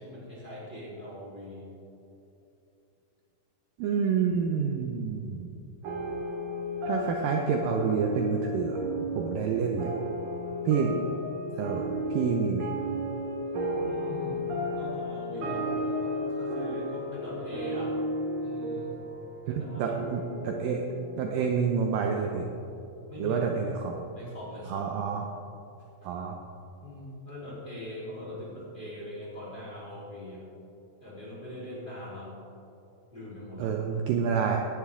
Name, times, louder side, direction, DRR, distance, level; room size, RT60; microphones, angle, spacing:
voice 1, 0.0-1.7 6.2-6.3 13.7-18.0 18.4-18.9 19.5-19.9 23.1-23.4 24.1-24.9 26.0-26.1 26.8-30.4 31.0-32.3 33.1-33.7, left 1 dB, 15° left, -8 dB, 3.3 m, -41 dB
voice 2, 3.8-5.5 6.8-8.8 9.1-9.9 10.7-11.0 11.6-12.7 19.5-20.8 21.2-22.5 23.2-24.0 24.7-25.3 26.0-26.4 33.6-34.6, right 6 dB, 75° right, 2 dB, 2.2 m, -28 dB
sound 1, 5.8-22.6, equal, 55° right, 3.2 m, -34 dB
18.5 x 10.5 x 3.7 m, 2.8 s
omnidirectional pair, 4.6 m